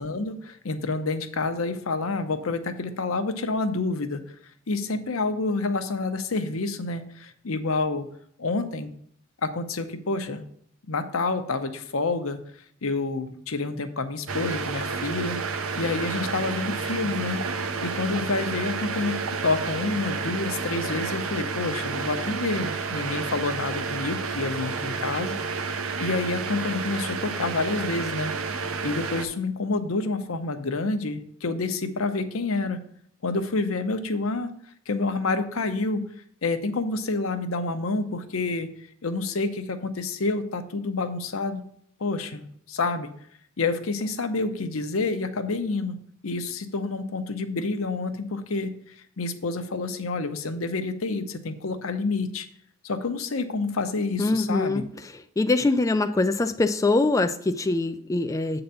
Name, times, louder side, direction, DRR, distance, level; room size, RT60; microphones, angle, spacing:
voice 1, 0.0-4.2 4.7-8.0 8.4-8.9 9.4-10.4 10.9-12.4 12.8-15.4 15.8-17.4 17.8-25.4 26.0-28.3 28.6-32.8 33.2-34.5 34.9-36.0 36.4-38.7 39.0-41.6 42.0-43.1 43.6-45.9 46.2-52.5 52.8-54.8, left 3 dB, 85° left, 8 dB, 0.8 m, -28 dB
sound 1, 14.3-29.2, right 4 dB, 90° right, 0.7 m, -30 dB
voice 2, 54.2-54.8 55.4-58.6, left 2 dB, 15° left, 7 dB, 0.3 m, -23 dB
7.9 x 3.9 x 6.8 m, 0.66 s
head